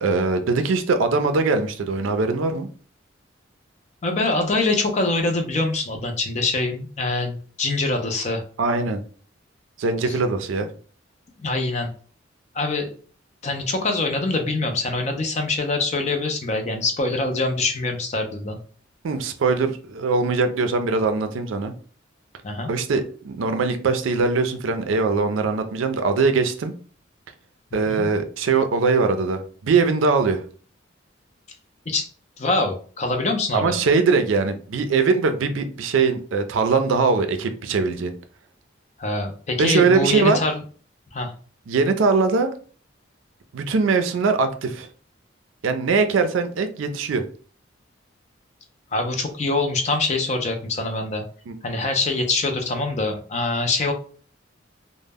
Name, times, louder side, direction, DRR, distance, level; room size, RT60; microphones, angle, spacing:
voice 1, 0.0-2.7 8.6-9.0 9.8-10.7 19.0-21.7 22.7-26.7 27.7-30.4 33.5-38.1 39.6-40.4 41.7-42.5 43.5-44.9 45.6-47.2 51.5-51.6, right 4 dB, 80° right, 8 dB, 0.4 m, -21 dB
voice 2, 4.0-8.4 10.1-10.2 11.4-11.9 12.5-12.9 13.4-18.6 22.4-22.7 27.9-28.1 31.9-32.1 32.4-33.8 39.0-40.6 41.1-41.3 48.9-51.2 51.6-53.9, left 2 dB, 35° left, 4 dB, 0.4 m, -24 dB
2.0 x 2.0 x 3.4 m, 0.42 s
head